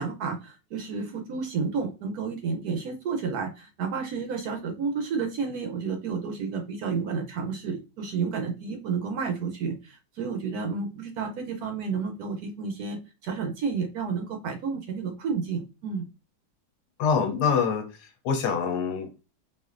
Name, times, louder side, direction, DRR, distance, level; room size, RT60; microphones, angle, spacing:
voice 1, 0.0-16.0, right 5 dB, 70° right, 1.0 m, -31 dB
voice 2, 17.0-19.2, left 6 dB, 70° left, 1.1 m, -26 dB
4.2 x 2.5 x 2.4 m
omnidirectional pair, 1.9 m